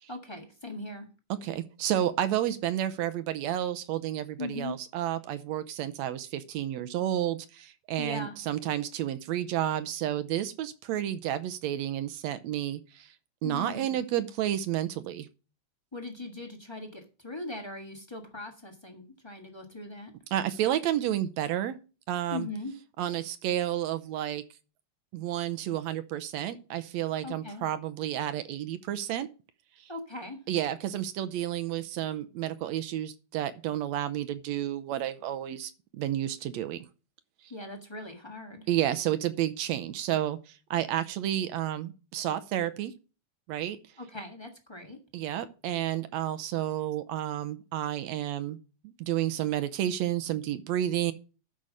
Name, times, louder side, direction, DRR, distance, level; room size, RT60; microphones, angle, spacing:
voice 1, 0.1-1.1 4.4-4.7 8.0-8.4 13.4-14.0 15.9-20.1 22.3-22.7 27.2-27.7 29.9-30.4 37.5-38.7 44.0-45.0, left 2 dB, 30° left, 0.5 m, -39 dB
voice 2, 1.3-13.1 13.4-15.3 20.3-21.8 22.1-22.5 23.0-24.4 25.1-29.3 29.8-29.9 30.5-36.9 38.7-42.9 43.5-43.8 45.1-48.6 48.8-51.1, right 12 dB, 75° right, 1.9 m, -31 dB
13.0 x 5.7 x 5.0 m
omnidirectional pair, 3.4 m